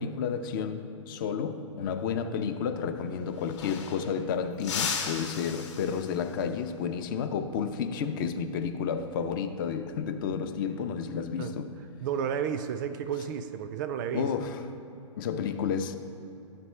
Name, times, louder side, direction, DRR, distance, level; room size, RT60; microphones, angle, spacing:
voice 1, 0.0-11.7 14.1-14.6 15.2-15.9, left 6 dB, 40° left, 0.5 m, -31 dB
sound 1, 3.0-3.1 3.3-4.2 4.6-6.4 8.9-9.1 10.6-11.0, left 6 dB, 65° left, 1.0 m, -36 dB
voice 2, 12.0-14.3, right 8 dB, 35° right, 0.3 m, -32 dB
11.5 x 4.2 x 3.2 m
hypercardioid pair, 130°, 16 cm